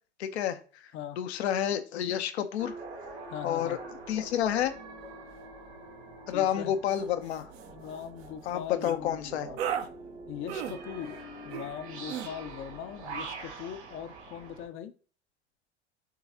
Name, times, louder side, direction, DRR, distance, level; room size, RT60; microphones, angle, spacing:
voice 1, 0.2-0.6 1.2-2.8 3.4-3.8 4.1-4.7 6.3-7.5 8.5-9.5, left 10 dB, 70° left, 9 dB, 0.9 m, -29 dB
sound 1, 2.6-14.7, right 3 dB, 80° right, 2.8 m, -44 dB
voice 2, 3.3-3.8 6.3-6.8 7.7-9.6 10.3-11.2 11.4-14.9, left 9 dB, 35° left, 10 dB, 0.7 m, -40 dB
sound 2, 6.9-7.0 7.3-7.6 8.8-9.0 9.6-9.9 10.5-10.8 11.5-11.7 12.1-12.3, right 9 dB, 60° right, 0.9 m, -34 dB
11.0 x 3.9 x 2.8 m, 0.38 s
figure-of-eight pair, 75°, 34 cm